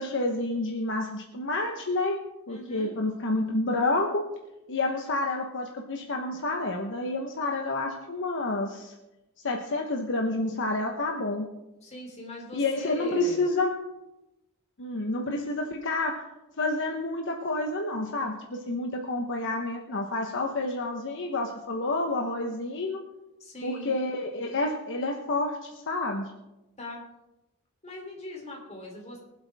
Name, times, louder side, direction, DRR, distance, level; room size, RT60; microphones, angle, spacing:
voice 1, 0.0-4.3 4.7-8.9 9.4-11.5 12.5-13.8 14.8-16.3 16.6-23.1 23.6-26.3, left 2 dB, 60° left, 2 dB, 1.1 m, -29 dB
voice 2, 2.5-3.0 11.8-13.4 23.4-23.9 26.8-27.0 27.8-29.2, left 1 dB, 30° left, -1 dB, 3.2 m, -41 dB
23.5 x 8.0 x 3.5 m, 0.99 s
head